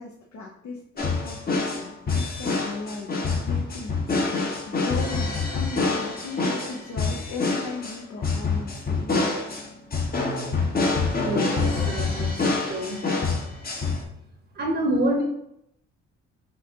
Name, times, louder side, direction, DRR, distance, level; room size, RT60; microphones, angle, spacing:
voice 1, 0.0-4.4 4.7-9.4, left 3 dB, 65° left, -1 dB, 0.7 m, -37 dB
sound 1, 1.0-14.0, left 3 dB, 30° left, 0.9 m, -26 dB
voice 2, 11.1-13.0 14.5-15.2, right 1 dB, 35° right, 1 dB, 0.8 m, -27 dB
5.5 x 2.8 x 2.7 m, 0.79 s
cardioid pair, 90°, 30 cm